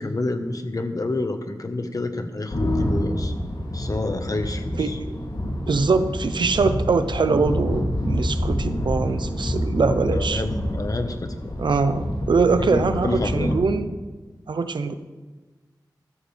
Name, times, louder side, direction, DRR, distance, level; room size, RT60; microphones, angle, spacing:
voice 1, 0.0-3.3 3.7-5.0 10.1-11.5 12.5-13.5, left 2 dB, 50° left, 6 dB, 1.4 m, -29 dB
sound 1, 2.5-13.5, equal, 70° left, 2.9 m, -27 dB
voice 2, 4.8-5.2 5.7-10.4 11.6-14.0 14.5-14.9, right 4 dB, 85° right, 10 dB, 0.8 m, -23 dB
15.5 x 13.0 x 3.5 m, 1.3 s
wide cardioid pair, 65°, 8 cm